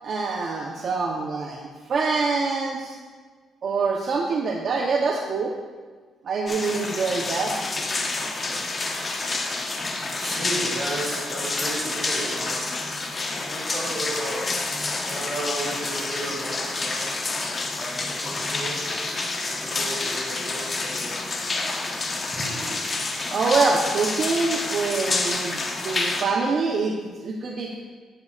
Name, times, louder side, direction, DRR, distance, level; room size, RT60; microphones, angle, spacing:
voice 1, 0.0-3.0 3.6-5.5 6.2-7.5 23.3-27.7, right 4 dB, 55° right, 0 dB, 0.8 m, -25 dB
sound 1, 6.5-26.2, left 3 dB, 35° left, 1.1 m, -28 dB
voice 2, 10.1-12.7 13.5-14.6 15.0-17.1 17.7-18.8 19.3-21.8 22.3-22.6, right 1 dB, 20° right, -4 dB, 2.4 m, -34 dB
11.0 x 9.9 x 2.4 m, 1.5 s
cardioid pair, 90°, 0 cm